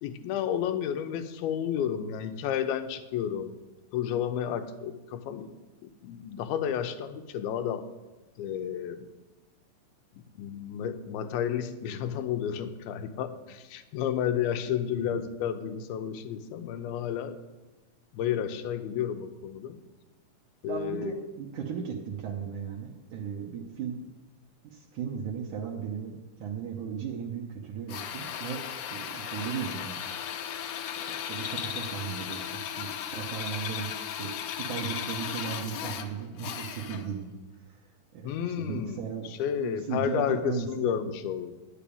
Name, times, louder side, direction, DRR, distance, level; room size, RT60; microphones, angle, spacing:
voice 1, 0.0-3.6 3.9-5.5 6.0-7.9 8.4-9.1 10.2-17.4 18.1-19.8 20.6-21.1 38.2-41.6, left 9 dB, 90° left, 9 dB, 2.7 m, -31 dB
voice 2, 20.7-24.1 24.6-28.6 28.9-30.0 31.0-37.3 38.1-41.0, right 7 dB, 70° right, -1 dB, 2.1 m, -36 dB
Drill, 27.9-37.2, left 9 dB, 70° left, 2.1 m, -36 dB
10.5 x 6.9 x 8.6 m, 1.1 s
omnidirectional pair, 4.3 m